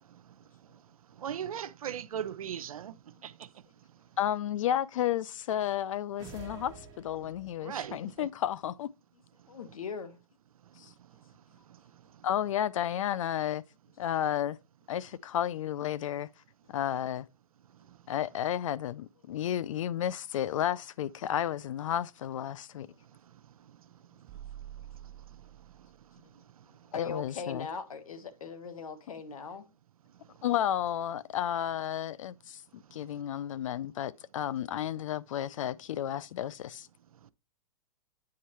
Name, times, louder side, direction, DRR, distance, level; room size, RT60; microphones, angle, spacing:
voice 1, 1.2-2.9 3.2-3.3 7.6-8.3, right 9 dB, 85° right, 0.6 m, -37 dB
voice 2, 4.2-8.9 10.8-10.9 12.2-13.6 14.0-14.6 14.9-16.3 16.7-17.3 18.1-22.9 26.9-27.7 30.4-36.9, left 11 dB, 65° left, 0.4 m, -32 dB
sound 1, 6.2-7.7, right 5 dB, 20° right, 1.5 m, -48 dB
voice 3, 9.5-10.2 26.9-29.7, left 5 dB, 85° left, 1.4 m, -40 dB
sound 2, 24.3-26.1, right 11 dB, 35° right, 0.6 m, -47 dB
8.5 x 5.4 x 3.0 m
hypercardioid pair, 145°, 18 cm